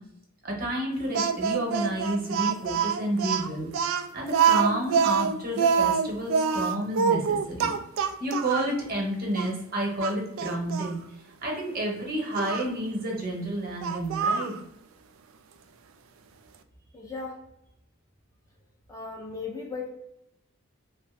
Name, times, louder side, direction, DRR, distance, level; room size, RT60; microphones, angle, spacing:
voice 1, 0.4-3.7 4.1-7.7 8.2-11.0 11.4-14.5, right 1 dB, 45° right, -1 dB, 1.0 m, -30 dB
Speech, 1.1-8.7 9.3-9.5 10.0-10.9 12.3-12.7 13.8-14.6, right 6 dB, 65° right, 0.3 m, -25 dB
voice 2, 16.9-17.5 18.9-19.9, left 4 dB, 15° left, -2 dB, 0.4 m, -36 dB
3.1 x 2.1 x 3.3 m, 0.83 s
head